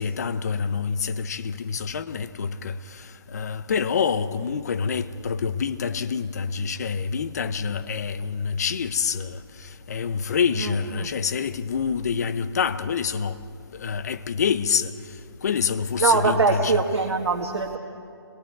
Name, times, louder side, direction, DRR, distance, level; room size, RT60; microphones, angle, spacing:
voice 1, 0.0-13.4 13.7-16.8, left 6 dB, 40° left, 0.7 m, -27 dB
voice 2, 10.5-11.1 16.0-17.8, right 4 dB, 70° right, 1.7 m, -23 dB
29.5 x 22.0 x 4.7 m
hypercardioid pair, 170°, 14 cm